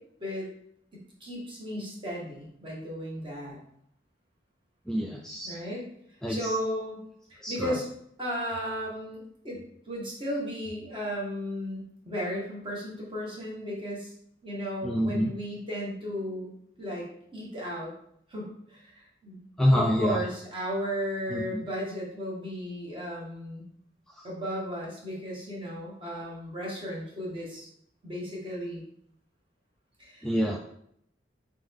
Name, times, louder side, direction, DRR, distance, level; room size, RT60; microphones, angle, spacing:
voice 1, 0.9-3.6 5.4-5.8 6.3-7.0 7.3-7.8 8.2-14.1 14.4-16.5 16.8-17.0 17.3-17.9 18.3-19.4 19.7-23.7 24.2-27.7 28.0-28.8 30.0-30.3, equal, 25° right, -4 dB, 1.3 m, -35 dB
voice 2, 4.9-5.5 6.2-6.5 7.4-7.8 14.8-15.3 19.6-20.2 21.3-21.6 24.2-24.3 30.2-30.6, equal, 5° left, -3 dB, 0.3 m, -27 dB
3.7 x 3.4 x 3.5 m, 0.70 s
head